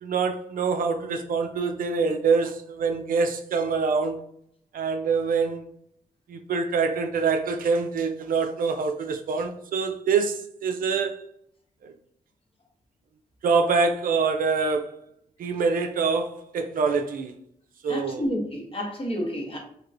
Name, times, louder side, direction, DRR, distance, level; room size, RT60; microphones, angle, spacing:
voice 1, 0.0-4.2 4.7-5.7 6.3-11.2 11.8-11.9 13.4-14.9 15.4-17.4 17.8-18.3, right 5 dB, 65° right, 0.4 m, -25 dB
voice 2, 17.9-19.6, equal, 35° left, 1.0 m, -30 dB
2.9 x 2.9 x 2.5 m
supercardioid pair, 45°, 15 cm